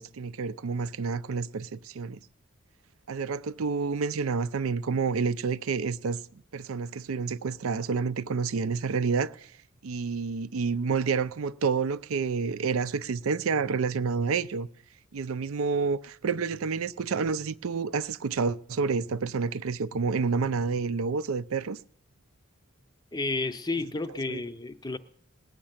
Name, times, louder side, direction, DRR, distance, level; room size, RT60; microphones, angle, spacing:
voice 1, 0.0-2.2 3.1-6.2 6.5-9.5 9.8-14.7 15.1-21.8 24.3-24.4, right 5 dB, 80° right, 0.5 m, -29 dB
voice 2, 23.1-25.0, left 3 dB, 20° left, 0.5 m, -31 dB
19.5 x 6.6 x 8.8 m
head